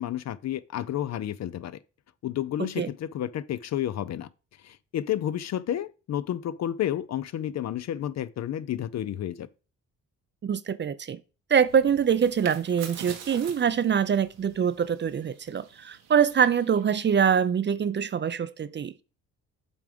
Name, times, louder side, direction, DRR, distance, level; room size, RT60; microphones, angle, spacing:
voice 1, 0.0-1.8 2.2-4.3 4.6-9.5, left 11 dB, 50° left, 0.5 m, -31 dB
voice 2, 2.6-2.9 10.4-11.2 11.5-19.0, right 7 dB, 30° right, 0.5 m, -24 dB
sound 1, 11.6-17.3, right 8 dB, 85° right, 1.3 m, -46 dB
7.1 x 3.5 x 5.0 m
supercardioid pair, 60°, 36 cm